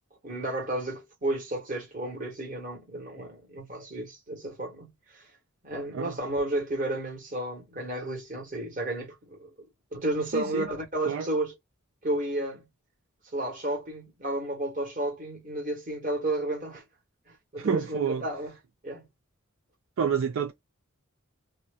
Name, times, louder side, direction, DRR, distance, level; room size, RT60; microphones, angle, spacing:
voice 1, 0.2-5.2 5.6-9.5 9.9-11.5 12.0-12.7 13.3-16.8 17.3-18.6 18.8-19.1, right 1 dB, 40° right, 1.3 m, -32 dB
voice 2, 10.3-10.7 11.1-11.3 17.6-18.2 20.0-20.5, right 7 dB, 70° right, 0.4 m, -28 dB
2.8 x 2.2 x 2.3 m
head